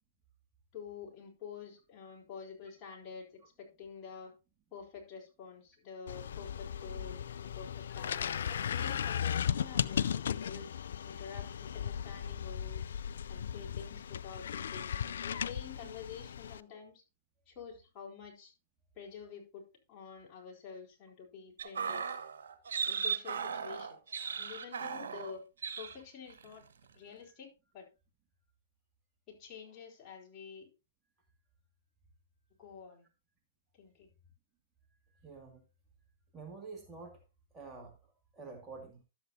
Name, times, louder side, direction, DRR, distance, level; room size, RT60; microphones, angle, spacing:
voice 1, 0.7-4.3 4.7-10.7 11.0-12.8 13.3-17.0 17.5-18.5 19.0-19.6 19.9-22.1 22.9-25.4 25.8-26.7 26.9-27.9 29.3-30.7 32.6-33.1 33.8-34.1, left 6 dB, 30° left, 4.3 m, -48 dB
sound 1, 6.1-16.6, left 8 dB, 70° left, 0.4 m, -36 dB
sound 2, 21.6-25.4 25.6-26.0 26.3-26.5, right 6 dB, 70° right, 1.4 m, -37 dB
voice 2, 35.2-35.6 36.3-37.2 37.5-38.0 38.3-39.0, right 4 dB, 15° right, 2.1 m, -48 dB
12.5 x 8.0 x 2.7 m
hypercardioid pair, 120°, 0 cm